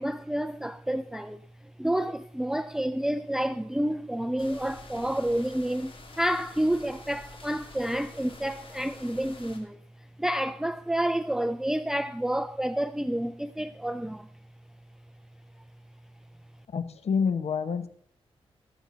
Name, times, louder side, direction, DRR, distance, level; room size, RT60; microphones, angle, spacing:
voice 1, 0.0-1.4 1.8-9.8 10.2-14.3, right 1 dB, 5° right, 0.4 m, -29 dB
sound 1, 4.4-9.6, left 3 dB, 55° left, 2.5 m, -49 dB
voice 2, 16.7-17.9, left 6 dB, 75° left, 0.9 m, -27 dB
17.5 x 8.0 x 4.0 m
cardioid pair, 75°, 11 cm